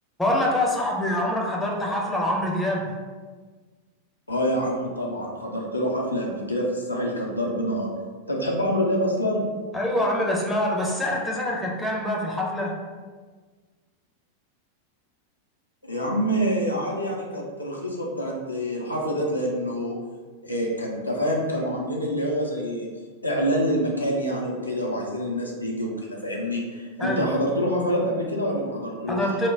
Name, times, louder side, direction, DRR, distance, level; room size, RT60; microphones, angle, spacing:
voice 1, 0.2-2.9 9.7-12.7 27.0-27.3 29.1-29.5, left 1 dB, 5° left, -2 dB, 0.5 m, -25 dB
voice 2, 4.3-7.9 8.3-9.4 15.8-20.0 20.4-22.9 23.2-29.2, equal, 85° left, -2 dB, 0.5 m, -26 dB
2.2 x 2.1 x 3.3 m, 1.4 s
figure-of-eight pair, 90°, 0 cm